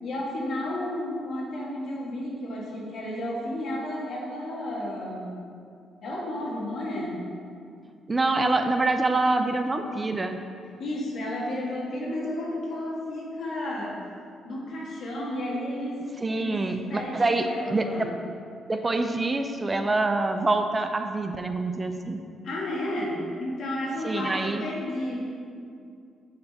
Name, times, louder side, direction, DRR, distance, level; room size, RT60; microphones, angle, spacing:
voice 1, 0.0-5.4 6.0-7.2 10.8-13.9 14.5-16.0 16.3-16.6 16.9-18.1 22.4-25.3, left 1 dB, 60° left, -3 dB, 1.5 m, -32 dB
voice 2, 8.1-10.4 16.2-18.1 18.7-22.2 24.0-24.6, right 2 dB, 25° right, 6 dB, 0.4 m, -26 dB
6.7 x 3.4 x 5.5 m, 2.3 s
cardioid pair, 90°, 0 cm